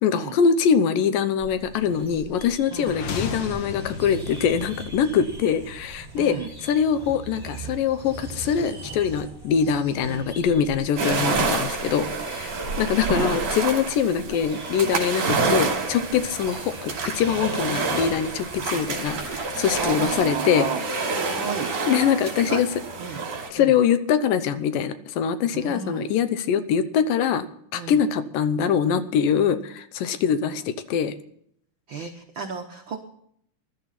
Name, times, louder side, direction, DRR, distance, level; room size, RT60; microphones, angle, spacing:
voice 1, 0.0-6.4 6.6-20.7 21.9-22.7 23.5-27.5 27.7-31.2, left 7 dB, 85° left, 11 dB, 2.6 m, -23 dB
sound 1, 1.4-20.3, right 4 dB, 15° right, 5.7 m, -41 dB
sound 2, 2.8-6.8, left 4 dB, 55° left, 1.9 m, -36 dB
voice 2, 6.2-6.5 10.0-10.3 13.2-13.4 15.4-15.7 18.6-18.8 19.8-20.8 21.2-21.7 22.5-22.6 23.0-23.2 23.6-23.8 25.5-26.1 27.7-28.0 31.9-33.0, right 6 dB, 80° right, 3 dB, 1.0 m, -33 dB
sound 3, 11.0-23.5, right 4 dB, 50° right, 3.8 m, -28 dB
20.0 x 12.0 x 4.2 m, 0.69 s
omnidirectional pair, 3.9 m